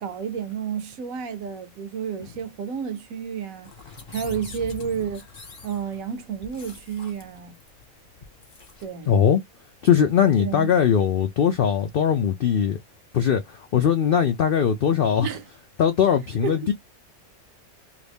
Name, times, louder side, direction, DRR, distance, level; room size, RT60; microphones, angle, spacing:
voice 1, 0.0-3.7 4.1-5.3 5.6-7.6 8.8-9.2 10.4-10.7 15.2-15.4 16.4-16.7, right 7 dB, 70° right, 1.0 m, -31 dB
sound 1, 3.6-8.9, left 5 dB, 45° left, 1.1 m, -43 dB
voice 2, 9.1-9.4 9.8-12.8 13.1-15.3 15.8-16.7, left 8 dB, 75° left, 0.5 m, -20 dB
2.8 x 2.6 x 3.4 m
omnidirectional pair, 1.5 m